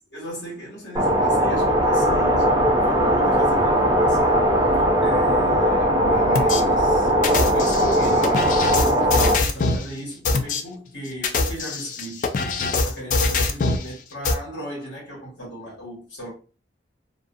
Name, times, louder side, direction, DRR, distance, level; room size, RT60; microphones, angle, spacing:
voice 1, 0.1-4.4 4.8-16.3, right 1 dB, 75° left, 1.4 m, -36 dB
sound 1, 1.0-9.4, equal, 20° right, 0.5 m, -19 dB
sound 2, 6.3-6.6 7.2-9.8 10.2-10.6 11.1-13.8 14.2-14.3, left 3 dB, 45° left, 0.3 m, -23 dB
2.5 x 2.3 x 2.5 m
head